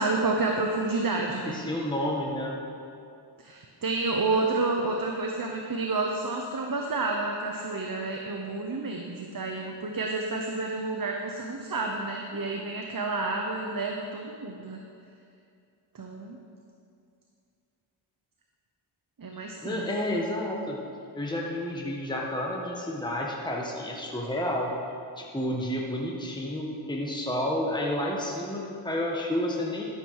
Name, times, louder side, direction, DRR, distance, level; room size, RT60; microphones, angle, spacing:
voice 1, 0.0-1.6 3.4-14.8 15.9-16.4 19.2-19.9, right 3 dB, 40° right, 2 dB, 1.0 m, -30 dB
voice 2, 1.5-2.6 19.6-20.8 21.1-24.7 25.2-29.8, left 1 dB, 10° left, -2 dB, 1.5 m, -30 dB
12.5 x 7.2 x 4.8 m, 2.4 s
cardioid pair, 50°, 49 cm